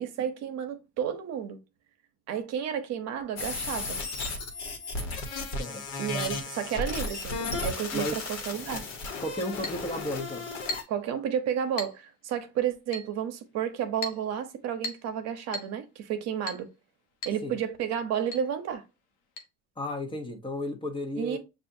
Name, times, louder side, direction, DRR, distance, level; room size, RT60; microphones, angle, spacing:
voice 1, 0.0-1.6 2.3-4.0 6.0-8.9 10.9-16.7 17.2-18.8 21.2-21.4, right 8 dB, 65° right, 0.9 m, -31 dB
sound 1, 3.4-10.8, left 3 dB, 65° left, 1.2 m, -34 dB
voice 2, 7.9-8.2 9.2-10.5 17.4-17.6 19.8-21.4, left 1 dB, 15° left, 0.9 m, -33 dB
Chink clink, 9.6-9.8 10.7-11.0 11.8-12.0 12.9-13.1 14.0-14.2 14.8-15.1 15.5-15.7 16.5-16.7 17.2-17.4 17.7-17.8 18.3-18.5 19.4-19.5, left 2 dB, 85° left, 1.0 m, -36 dB
6.8 x 2.5 x 2.6 m
cardioid pair, 115°, 29 cm